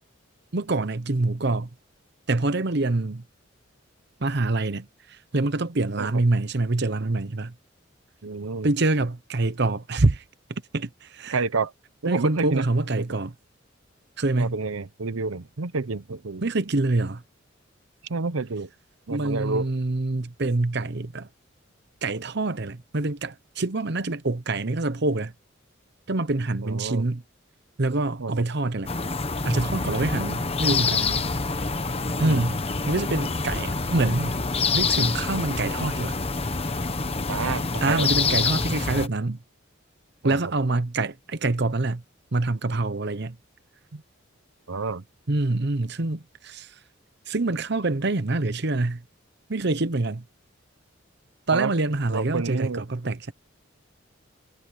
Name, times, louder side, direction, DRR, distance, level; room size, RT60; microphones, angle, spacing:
voice 1, 0.5-1.7 2.3-3.2 4.2-7.5 8.6-10.2 10.7-11.4 12.0-13.3 14.2-14.6 16.4-17.2 19.1-21.3 22.0-25.3 26.1-27.2 27.8-28.9 29.4-31.2 32.2-32.6 32.9-34.4 34.7-36.2 37.8-39.4 40.2-42.0 42.3-43.4 45.3-46.7 47.3-49.0 49.5-50.2 51.5-53.3, right 2 dB, 55° right, 0.9 m, -25 dB
voice 2, 8.2-8.7 11.3-11.7 12.0-12.7 13.0-13.1 14.4-16.4 18.1-18.7 19.1-19.7 26.6-27.1 28.2-28.4 32.2-32.4 37.3-38.1 40.2-40.4 43.9-44.0 44.7-45.0 51.5-51.7 52.1-52.8, right 4 dB, 85° right, 0.9 m, -29 dB
sound 1, 28.9-39.1, left 4 dB, 30° left, 1.2 m, -26 dB
head